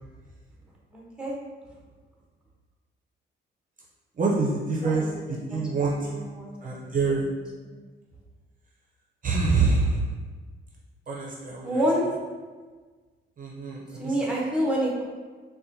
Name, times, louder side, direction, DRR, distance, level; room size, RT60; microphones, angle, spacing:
voice 1, 0.9-1.3 4.8-5.1 5.5-5.7 6.0-7.3 11.6-12.0 14.0-15.0, equal, 5° right, -3 dB, 0.8 m, -28 dB
voice 2, 4.2-6.3 6.6-7.3 9.2-10.0 11.1-11.8 13.4-14.1, right 3 dB, 45° right, -3 dB, 0.6 m, -26 dB
4.0 x 2.2 x 2.7 m, 1.4 s
cardioid pair, 90°, 20 cm